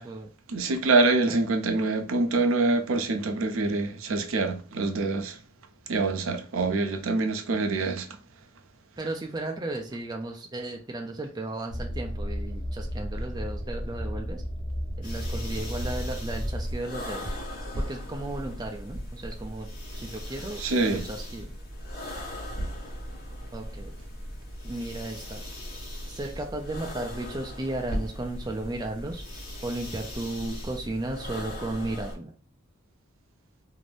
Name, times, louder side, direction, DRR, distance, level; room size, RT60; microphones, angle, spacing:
voice 1, 0.5-5.4 5.9-8.1 20.6-21.0, right 3 dB, 80° right, 0.5 m, -25 dB
voice 2, 9.0-14.4 15.0-17.3 17.8-21.5 23.5-23.9 24.6-25.4 26.1-29.2 29.6-32.3, right 2 dB, 20° right, 0.3 m, -35 dB
sound 1, 11.7-16.7, equal, 70° left, 0.9 m, -33 dB
sound 2, 15.0-32.1, equal, 40° left, 1.1 m, -38 dB
2.6 x 2.5 x 3.3 m
head